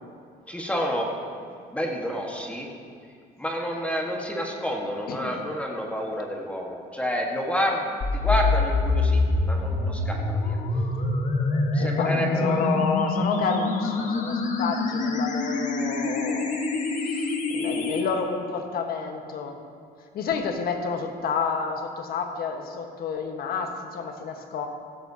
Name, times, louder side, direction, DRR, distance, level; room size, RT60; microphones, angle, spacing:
voice 1, 0.5-1.1 1.4-2.7 3.4-7.8 8.1-10.6 11.7-12.7, equal, 5° left, -1 dB, 1.5 m, -29 dB
sound 1, 8.0-18.0, left 3 dB, 50° left, 1.4 m, -25 dB
voice 2, 11.8-16.6 17.1-19.6 20.1-24.7, left 5 dB, 65° left, 4 dB, 1.3 m, -30 dB
15.5 x 13.5 x 2.8 m, 2.3 s
cardioid pair, 110°, 17 cm